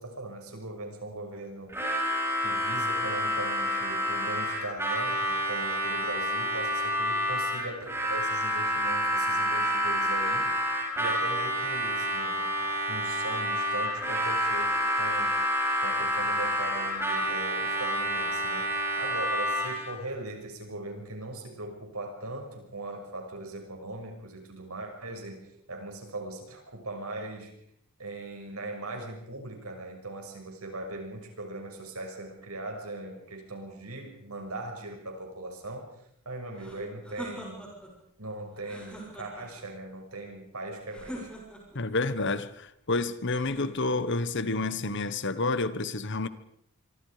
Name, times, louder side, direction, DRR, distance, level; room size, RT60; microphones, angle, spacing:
voice 1, 0.0-1.7 2.4-10.5 11.0-15.4 15.8-27.5 28.0-35.9 36.2-37.7 38.2-41.3, right 2 dB, 75° right, 6.5 m, -40 dB
Harmonica, 1.7-20.0, equal, 10° right, 5.6 m, -28 dB
sound 1, 36.6-37.9 38.6-39.6 40.9-41.8 43.3-44.2, equal, 5° left, 6.7 m, -43 dB
voice 2, 41.7-46.3, left 3 dB, 55° left, 1.3 m, -29 dB
26.0 x 24.5 x 5.1 m
head